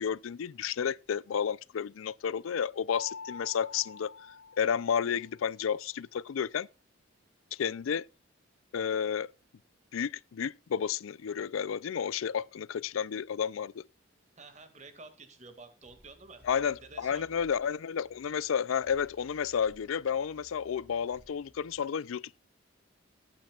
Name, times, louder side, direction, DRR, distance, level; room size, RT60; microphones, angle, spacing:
voice 1, 0.0-4.1 4.6-6.7 7.5-8.0 8.7-9.3 9.9-13.8 16.4-22.4, left 7 dB, 90° left, 0.4 m, -31 dB
Mallet percussion, 2.9-5.4, left 4 dB, 50° left, 0.8 m, -45 dB
voice 2, 14.4-17.2, right 3 dB, 35° right, 2.0 m, -50 dB
sound 1, 15.8-21.8, equal, 10° right, 6.5 m, -61 dB
18.5 x 8.8 x 2.4 m
head